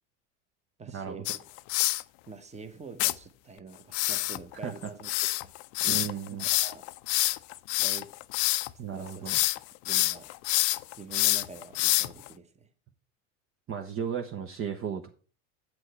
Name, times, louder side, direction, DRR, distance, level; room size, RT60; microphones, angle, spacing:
voice 1, 0.8-1.4 2.3-5.5 5.8-6.1 6.4-6.8 7.8-8.1 8.9-9.3 9.8-10.3 10.9-12.7, right 5 dB, 20° right, 1.2 m, -45 dB
sound 1, 1.3-2.0 3.0-3.1 3.9-8.7 9.1-9.6 9.9-12.3, left 20 dB, 70° left, 0.5 m, -27 dB
voice 2, 5.9-6.4 8.8-9.4 13.7-15.1, right 7 dB, 35° right, 1.0 m, -34 dB
8.4 x 6.2 x 4.4 m
supercardioid pair, 100°, 36 cm